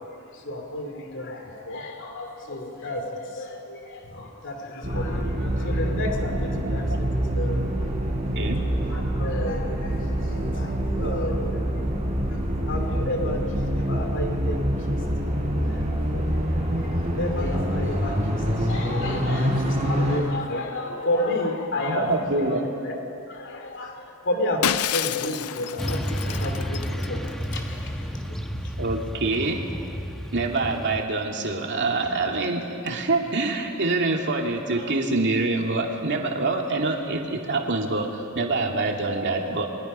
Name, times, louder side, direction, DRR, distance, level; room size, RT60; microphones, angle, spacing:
voice 1, 0.0-7.8 8.9-11.6 12.7-14.6 14.9-15.0 15.4-16.5 16.8-22.6 22.9-23.0 23.3-28.4 28.6-28.7, left 1 dB, 60° left, 3 dB, 2.8 m, -32 dB
sound 1, 4.8-20.2, equal, 30° right, 4.0 m, -26 dB
voice 2, 21.8-22.6 28.8-29.7 30.3-39.7, right 3 dB, 55° right, 1 dB, 2.4 m, -26 dB
Shatter, 24.6-27.3, left 10 dB, 85° left, 0.5 m, -29 dB
Motorcycle / Traffic noise roadway noise, 25.8-31.0, equal, ahead, 1.2 m, -31 dB
28.5 x 22.5 x 5.5 m, 2.6 s
head